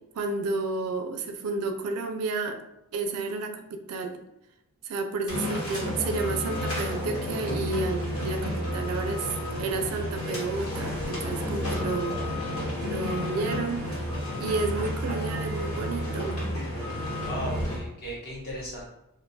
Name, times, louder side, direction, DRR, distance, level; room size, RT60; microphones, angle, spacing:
voice 1, 0.0-2.6 2.9-4.2 4.8-9.3 9.6-12.4 12.8-14.1 14.4-16.4, right 3 dB, 80° right, 6 dB, 0.4 m, -31 dB
sound 1, 5.3-17.8, left 1 dB, 75° left, 1.2 m, -31 dB
sound 2, 5.9-9.7 11.2-14.8, equal, 20° right, 0.4 m, -44 dB
voice 2, 17.2-18.9, equal, 45° left, -5 dB, 1.0 m, -36 dB
2.4 x 2.2 x 3.9 m, 0.88 s
head